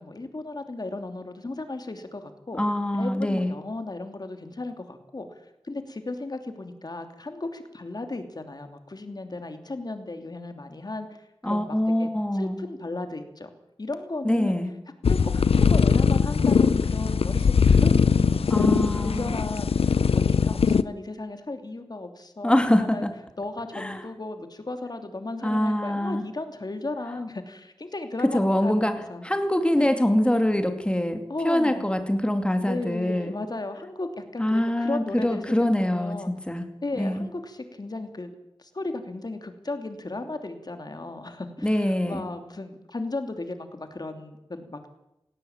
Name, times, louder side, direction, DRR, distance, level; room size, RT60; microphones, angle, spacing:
voice 1, 0.0-2.6 3.0-13.5 13.8-14.6 15.1-23.1 23.4-29.3 29.8-29.9 31.3-31.9 32.6-36.3 36.8-38.3 38.6-44.9, left 2 dB, 45° left, 7 dB, 3.0 m, -35 dB
voice 2, 2.6-3.6 11.4-12.6 14.2-14.7 18.5-19.4 22.4-23.1 23.7-24.0 25.4-26.3 28.2-29.0 29.2-33.3 34.4-36.7 37.0-37.3 41.6-42.2, left 1 dB, 10° left, 7 dB, 2.5 m, -24 dB
sound 1, 15.0-20.8, left 6 dB, 85° left, 0.7 m, -21 dB
18.5 x 17.0 x 8.9 m, 0.88 s
wide cardioid pair, 75°, 10 cm